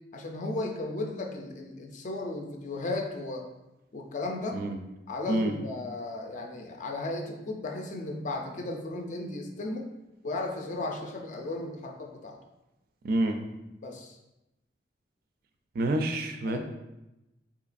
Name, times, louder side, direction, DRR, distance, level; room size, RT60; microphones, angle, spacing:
voice 1, 0.1-3.5 3.9-4.6 5.1-9.9 10.2-12.4 13.8-14.2 16.5-16.6, left 2 dB, 45° left, 2 dB, 0.4 m, -35 dB
voice 2, 13.0-13.4 15.8-16.6, right 1 dB, 55° right, 5 dB, 0.3 m, -27 dB
3.9 x 2.9 x 2.5 m, 0.95 s
head